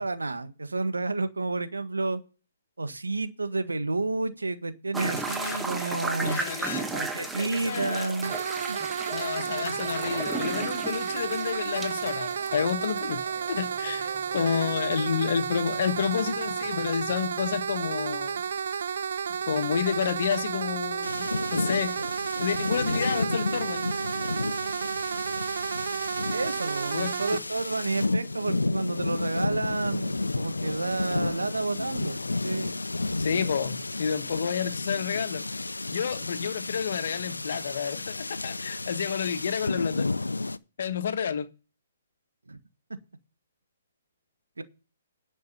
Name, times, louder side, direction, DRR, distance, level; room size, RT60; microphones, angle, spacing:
voice 1, 0.0-2.2 2.8-6.4 6.9-8.3 8.7-8.8 26.3-32.2 32.4-32.8 42.5-42.6 44.6-44.7, right 3 dB, 85° right, 1.6 m, -30 dB
sound 1, 4.9-16.9, right 3 dB, 5° right, 1.6 m, -37 dB
voice 2, 5.3-6.0 6.2-6.9 7.2-8.1 9.1-18.5 19.5-21.9 22.4-24.3 26.9-27.1 33.2-35.4 35.9-40.1 40.8-41.5, left 7 dB, 60° left, 1.3 m, -30 dB
sound 2, 8.2-27.4, right 7 dB, 60° right, 0.5 m, -32 dB
sound 3, 21.0-40.6, left 2 dB, 85° left, 0.6 m, -32 dB
10.5 x 6.4 x 6.8 m
figure-of-eight pair, 130°, 0 cm